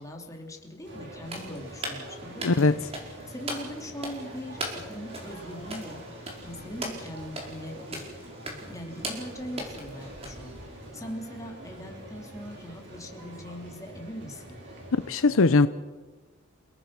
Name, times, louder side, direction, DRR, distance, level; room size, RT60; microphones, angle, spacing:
voice 1, 0.0-14.6 15.0-15.6, equal, 15° left, 1 dB, 3.2 m, -41 dB
sound 1, 0.8-15.1, right 1 dB, 60° right, 5.6 m, -45 dB
sound 2, 1.2-11.0, right 1 dB, 30° right, 4.9 m, -40 dB
voice 2, 2.4-2.8 15.1-15.7, left 3 dB, 65° left, 12 dB, 0.7 m, -20 dB
30.0 x 18.0 x 6.1 m, 1.3 s
head